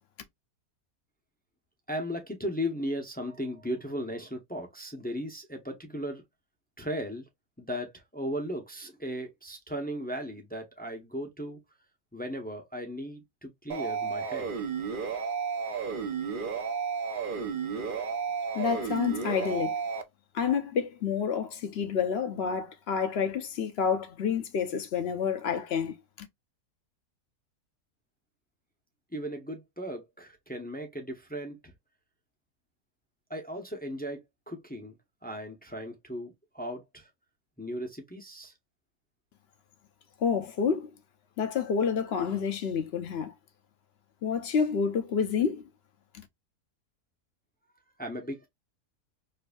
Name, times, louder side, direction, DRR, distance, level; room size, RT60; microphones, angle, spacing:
voice 1, 1.9-6.2 6.8-7.2 7.6-11.6 12.1-14.5 29.1-31.7 33.3-34.9 35.2-37.1 37.6-38.5 48.0-48.5, equal, 15° left, 0.3 m, -36 dB
sound 1, 13.7-20.0, right 6 dB, 60° right, 0.5 m, -32 dB
voice 2, 18.5-19.7 20.3-26.3 40.2-40.9 41.4-43.3 44.2-45.6 46.1-46.2, left 6 dB, 65° left, 0.6 m, -29 dB
4.6 x 2.6 x 2.3 m
omnidirectional pair, 1.7 m